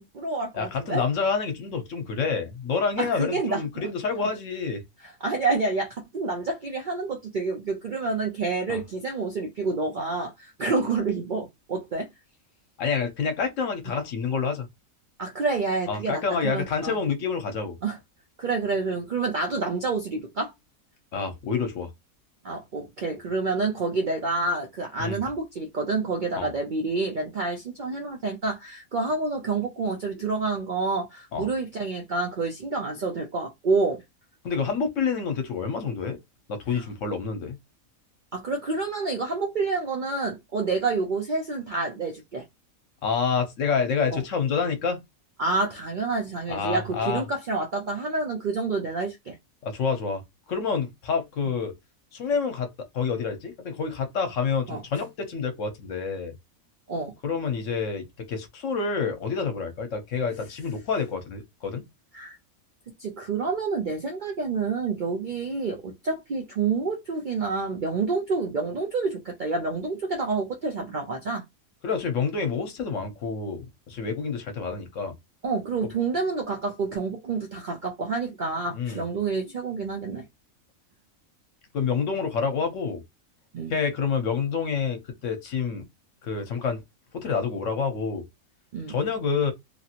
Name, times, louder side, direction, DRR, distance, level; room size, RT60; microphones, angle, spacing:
voice 1, 0.0-1.0 3.0-3.6 4.2-4.3 5.0-12.1 15.2-17.0 17.8-18.0 18.4-20.5 22.4-34.0 38.3-42.4 44.1-44.2 45.4-49.4 54.7-54.8 56.9-57.1 62.1-62.4 63.0-71.4 75.4-80.2 83.5-83.7 88.7-88.9, right 3 dB, 60° right, 0.5 m, -28 dB
voice 2, 0.5-4.8 8.7-8.8 12.8-14.7 15.9-17.8 21.1-21.9 25.0-25.2 26.4-26.5 31.3-31.5 34.4-36.2 36.5-37.6 43.0-45.0 46.5-47.2 49.6-50.2 50.5-51.7 52.1-56.4 57.2-61.8 71.8-75.1 75.8-75.9 78.7-79.0 81.7-83.0 83.7-85.8 86.2-86.8 87.1-88.2 88.9-89.5, left 5 dB, 65° left, 1.1 m, -28 dB
3.0 x 2.5 x 2.8 m
omnidirectional pair, 1.5 m